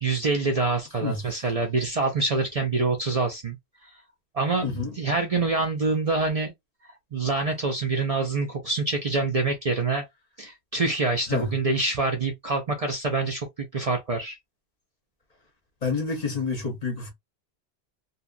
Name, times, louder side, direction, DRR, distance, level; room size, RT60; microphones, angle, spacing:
voice 1, 0.0-3.6 4.3-6.5 7.1-10.0 10.4-13.5 13.7-14.4, right 3 dB, 45° right, 0.6 m, -26 dB
voice 2, 4.6-4.9 11.3-11.5 15.8-17.1, left 4 dB, 40° left, 0.8 m, -28 dB
2.7 x 2.3 x 2.3 m
omnidirectional pair, 1.1 m